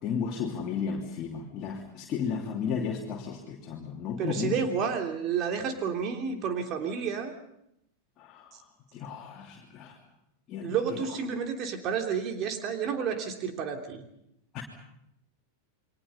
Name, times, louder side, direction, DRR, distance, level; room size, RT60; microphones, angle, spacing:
voice 1, 0.0-4.6 8.2-10.0 10.5-11.0 14.5-14.6, left 6 dB, 35° left, -2 dB, 3.0 m, -34 dB
voice 2, 4.2-7.3 10.6-14.0, right 6 dB, 35° right, 5 dB, 3.1 m, -30 dB
29.5 x 23.0 x 5.6 m, 0.80 s
figure-of-eight pair, 90°, 0 cm